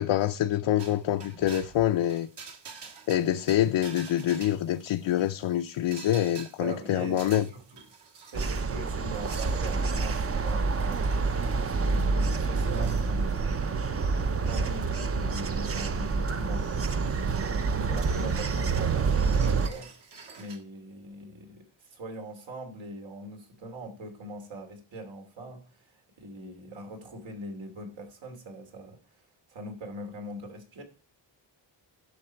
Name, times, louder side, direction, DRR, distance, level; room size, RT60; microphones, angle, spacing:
voice 1, 0.0-2.3 3.1-7.5, left 12 dB, 80° left, 0.6 m, -26 dB
sound 1, 0.8-20.6, right 5 dB, 65° right, 1.9 m, -50 dB
voice 2, 6.6-7.8 8.3-17.5 17.8-19.9 20.4-29.0 29.5-30.8, right 1 dB, 80° right, 2.8 m, -42 dB
sound 2, 8.3-19.7, right 4 dB, 30° right, 0.6 m, -27 dB
11.0 x 6.0 x 4.4 m
wide cardioid pair, 140°, 45 cm